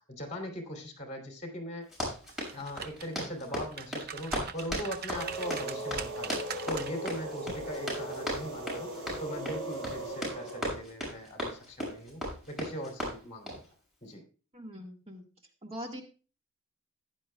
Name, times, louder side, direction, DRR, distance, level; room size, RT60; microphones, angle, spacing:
voice 1, 0.0-1.9 2.5-13.6 14.0-14.2, equal, 35° left, 3 dB, 2.7 m, -40 dB
Run, 1.8-13.7, equal, ahead, 6.0 m, -37 dB
sound 1, 2.3-3.2 3.6-7.1 7.5-7.7, right 7 dB, 45° right, 0.6 m, -41 dB
sound 2, 5.1-10.7, right 1 dB, 85° right, 4.5 m, -38 dB
voice 2, 14.5-15.2 15.6-16.0, equal, 30° right, 2 dB, 1.5 m, -42 dB
15.0 x 10.5 x 2.2 m, 0.36 s
head